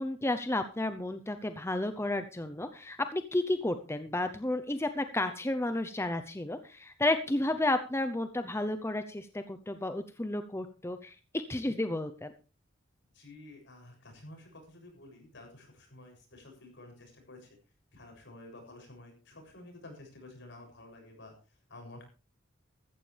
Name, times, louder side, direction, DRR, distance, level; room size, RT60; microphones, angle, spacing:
voice 1, 0.0-12.3, left 1 dB, 15° left, 9 dB, 0.7 m, -32 dB
voice 2, 13.1-17.6 17.9-22.1, left 2 dB, 65° left, 3 dB, 7.1 m, -51 dB
15.0 x 14.5 x 3.4 m, 0.32 s
head